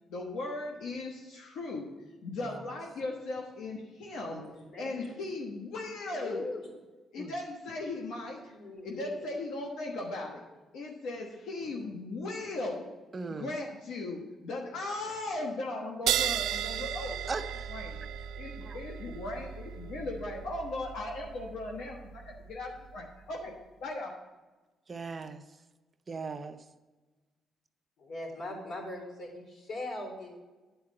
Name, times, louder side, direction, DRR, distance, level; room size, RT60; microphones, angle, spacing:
voice 1, 0.1-1.8 2.2-4.4 4.8-6.4 7.1-8.5 8.8-10.4 10.7-12.9 13.3-17.4 17.7-18.0 18.4-23.5 23.8-24.1, left 2 dB, 85° left, -1 dB, 1.2 m, -37 dB
voice 2, 4.3-5.2 6.1-6.7 8.5-9.3 28.0-30.3, left 2 dB, 60° left, 0 dB, 3.8 m, -41 dB
voice 3, 13.1-13.5 17.3-17.7 18.6-18.8 24.9-25.4 26.1-26.6, right 4 dB, 35° right, 8 dB, 0.6 m, -38 dB
sound 1, 16.1-23.0, right 10 dB, 85° right, 0.4 m, -36 dB
10.0 x 4.8 x 7.6 m, 1.2 s
cardioid pair, 90°, 0 cm